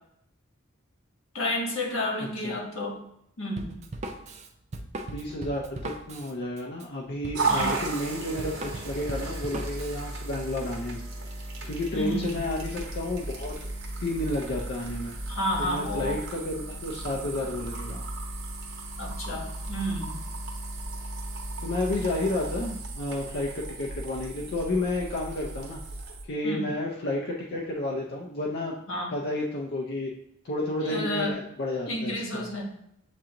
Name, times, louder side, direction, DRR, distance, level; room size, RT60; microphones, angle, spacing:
voice 1, 1.3-3.0 3.4-3.7 7.5-7.8 11.9-12.4 15.3-16.2 19.0-20.2 26.4-26.7 28.9-29.2 30.8-31.4 31.9-32.6, left 1 dB, 85° left, -1 dB, 1.3 m, -31 dB
Drum kit, 3.6-10.0, right 2 dB, 35° right, 0.4 m, -39 dB
voice 2, 5.1-11.0 11.6-13.7 14.0-15.1 15.6-18.0 21.6-25.8 26.3-28.8 29.1-30.1 30.4-32.5, left 1 dB, 55° left, -1 dB, 0.5 m, -31 dB
sound 1, 7.3-26.1, right 2 dB, 60° right, 0.9 m, -36 dB
sound 2, 12.2-26.3, right 2 dB, 80° right, 0.6 m, -41 dB
7.4 x 2.5 x 2.8 m, 0.76 s
head